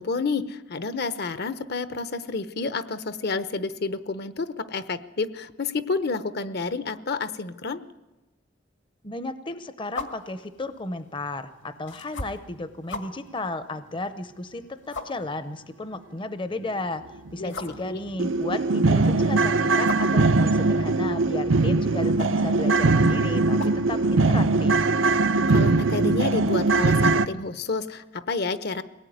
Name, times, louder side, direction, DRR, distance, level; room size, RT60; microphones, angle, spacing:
voice 1, 0.0-7.8 17.4-17.5 17.8-18.0 25.5-28.8, left 4 dB, 55° left, 13 dB, 0.9 m, -30 dB
voice 2, 9.0-17.0 17.3-24.8, left 2 dB, 25° left, 11 dB, 0.7 m, -34 dB
sound 1, 9.9-24.6, left 3 dB, 75° left, 1.9 m, -43 dB
sound 2, 17.3-17.4 17.8-17.9 18.2-27.3, right 3 dB, 90° right, 0.8 m, -21 dB
22.0 x 18.0 x 9.4 m, 1.1 s
head